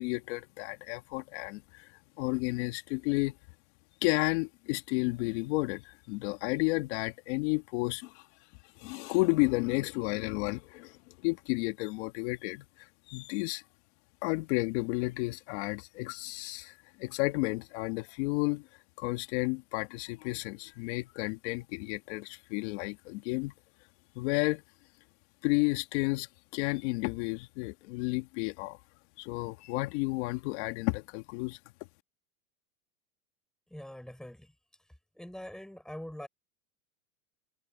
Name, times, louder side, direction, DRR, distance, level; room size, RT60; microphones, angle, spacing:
voice 1, 0.0-1.9 2.2-3.4 4.0-8.2 8.8-12.7 13.1-13.6 14.2-18.7 19.0-23.5 24.2-24.6 25.4-26.3 26.5-28.8 29.2-31.6, left 24 dB, 55° left, 2.1 m, -32 dB
voice 2, 33.7-34.5 35.2-36.3, left 1 dB, ahead, 5.4 m, -43 dB
supercardioid pair, 145°, 41 cm